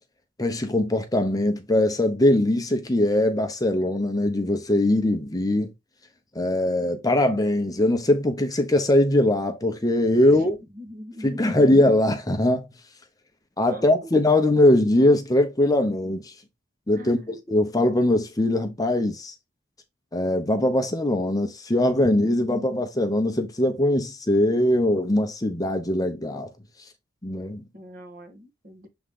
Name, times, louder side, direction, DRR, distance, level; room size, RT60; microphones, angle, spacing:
voice 1, 0.4-5.7 6.3-10.6 11.2-12.7 13.6-16.3 16.9-19.3 20.1-26.5 27.2-27.6, left 1 dB, 20° left, 0.8 m, -21 dB
voice 2, 10.8-11.7 13.7-13.8 16.9-17.3 22.6-22.8 27.7-28.9, equal, 45° right, 1.7 m, -40 dB
7.1 x 3.7 x 3.6 m
head